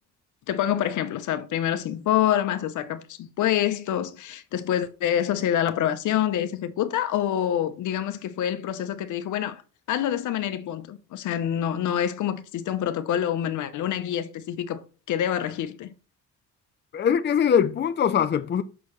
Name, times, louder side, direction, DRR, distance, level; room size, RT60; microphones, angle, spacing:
voice 1, 0.5-9.6 9.9-14.8 15.1-15.9, left 10 dB, 75° left, 0.9 m, -26 dB
voice 2, 16.9-18.6, left 8 dB, 35° left, 0.5 m, -22 dB
6.4 x 6.0 x 3.1 m
cardioid pair, 90°, 30 cm